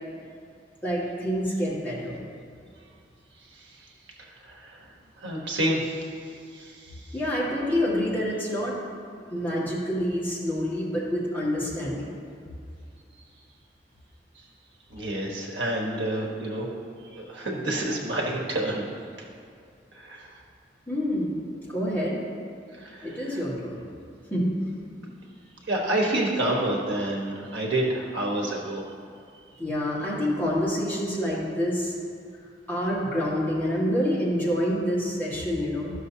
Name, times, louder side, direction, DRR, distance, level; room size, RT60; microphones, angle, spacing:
voice 1, 0.8-2.3 7.1-8.8 9.3-12.1 20.9-21.4 21.7-22.2 23.0-23.8 24.3-24.5 29.6-32.0 32.7-35.9, equal, 10° left, -7 dB, 1.8 m, -27 dB
voice 2, 3.4-3.9 4.2-4.9 5.2-7.2 13.1-13.2 14.3-14.5 14.9-16.7 17.1-18.9 19.2-19.3 19.9-20.4 22.7-23.4 25.0-25.1 25.7-28.8, right 1 dB, 75° right, -1 dB, 1.2 m, -29 dB
12.5 x 6.5 x 2.8 m, 2.3 s
head